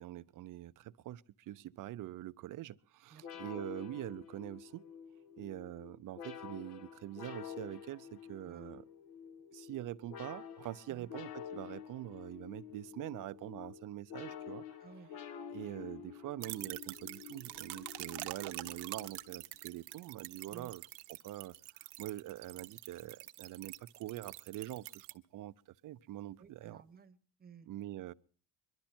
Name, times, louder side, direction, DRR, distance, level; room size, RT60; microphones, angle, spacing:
voice 1, 0.0-4.8 5.4-8.8 9.5-14.8 15.5-20.8 21.2-25.5 25.8-26.8 27.7-28.1, right 14 dB, 50° right, 0.6 m, -44 dB
voice 2, 3.1-3.4 8.5-8.8 10.9-11.1 14.8-15.1 20.5-20.7 26.4-27.7, right 6 dB, 25° right, 1.1 m, -56 dB
sound 1, 3.2-19.4, left 8 dB, 65° left, 1.3 m, -49 dB
sound 2, 16.4-25.1, right 17 dB, 75° right, 1.1 m, -46 dB
22.5 x 12.0 x 4.4 m
cardioid pair, 120°, 40 cm